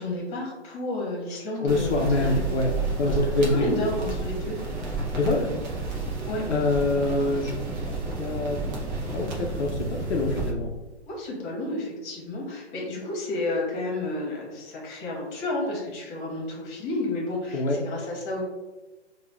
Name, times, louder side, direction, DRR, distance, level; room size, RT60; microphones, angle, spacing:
voice 1, 0.0-2.5 3.0-4.6 6.3-6.4 11.1-18.4, left 1 dB, 25° left, -2 dB, 1.2 m, -31 dB
voice 2, 1.6-3.9 5.1-5.5 6.4-7.6 7.9-8.6 9.1-10.7 17.5-17.8, left 2 dB, 75° left, 1 dB, 0.6 m, -25 dB
sound 1, 1.7-10.5, right 3 dB, 20° right, 0.4 m, -31 dB
5.1 x 2.3 x 2.2 m, 1.2 s
hypercardioid pair, 130°, 34 cm